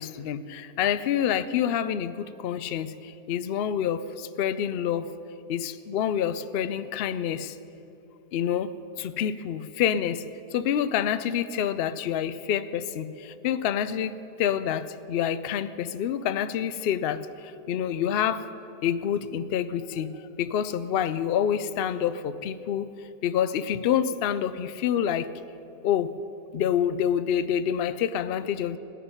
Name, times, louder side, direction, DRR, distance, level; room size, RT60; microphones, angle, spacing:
voice 1, 0.0-5.1 5.5-7.6 8.3-10.2 10.5-18.5 18.8-22.9 23.2-25.3 25.8-26.1 26.5-28.8, left 9 dB, 70° left, 13 dB, 0.5 m, -27 dB
17.5 x 11.0 x 5.6 m, 2.8 s
omnidirectional pair, 1.6 m